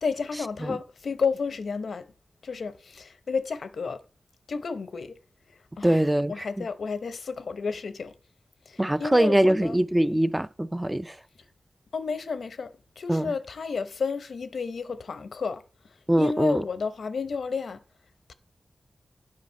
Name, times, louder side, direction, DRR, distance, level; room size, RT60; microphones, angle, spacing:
voice 1, 0.0-2.1 2.4-4.0 4.5-5.2 5.8-6.0 6.3-8.1 8.7-9.8 11.9-15.6 16.2-17.8, left 5 dB, 75° left, 0.8 m, -31 dB
voice 2, 5.8-6.5 8.8-11.1 13.1-13.3 16.1-16.6, right 1 dB, 10° right, 0.4 m, -23 dB
9.5 x 5.0 x 6.3 m
wide cardioid pair, 110°, 0 cm